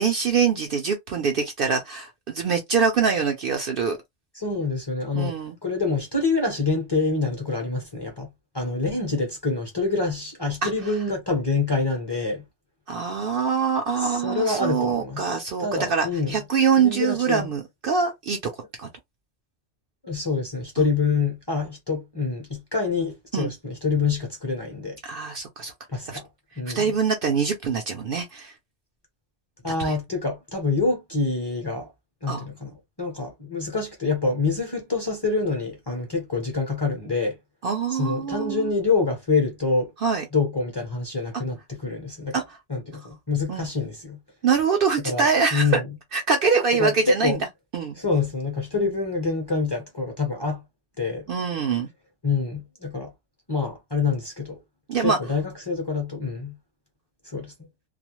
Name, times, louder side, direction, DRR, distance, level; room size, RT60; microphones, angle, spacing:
voice 1, 0.0-4.0 5.1-5.6 10.6-10.7 12.9-18.5 18.8-18.9 20.8-20.9 23.3-23.5 25.0-25.7 26.1-26.2 26.7-28.5 29.8-30.0 32.3-32.4 37.6-38.7 40.0-40.2 42.3-42.6 43.5-43.7 44.4-45.8 46.1-47.4 47.7-48.0 51.3-51.9 54.9-55.2, right 5 dB, 60° right, 0.6 m, -24 dB
voice 2, 4.3-5.3 5.6-12.4 14.0-15.3 15.6-16.4 16.8-17.5 20.0-25.0 25.9-26.3 26.6-26.9 29.6-31.9 32.2-37.4 37.9-39.9 40.3-42.4 42.7-44.2 45.0-45.8 46.8-47.4 48.0-50.6 51.0-51.2 52.2-53.1 53.5-54.6 55.0-56.6 57.2-57.5, left 4 dB, 25° left, 0.6 m, -26 dB
2.4 x 2.0 x 2.9 m
omnidirectional pair, 1.2 m